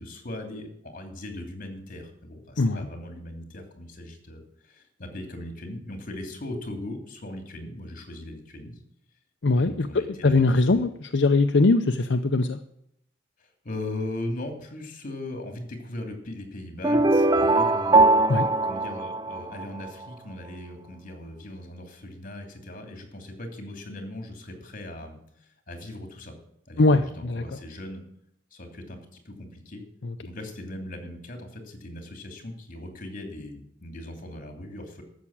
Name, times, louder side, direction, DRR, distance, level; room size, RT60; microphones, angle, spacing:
voice 1, 0.0-4.4 4.7-8.7 9.5-10.9 13.6-18.2 18.6-25.2 25.7-26.3 26.7-28.0 28.5-29.8 30.2-35.0, left 1 dB, 45° left, 5 dB, 2.9 m, -39 dB
voice 2, 9.4-12.6 18.3-18.5 26.8-27.4 30.0-30.1, left 3 dB, 70° left, 7 dB, 0.7 m, -21 dB
sound 1, 16.8-19.9, right 2 dB, 20° right, 0.5 m, -21 dB
13.5 x 7.2 x 8.7 m, 0.74 s
head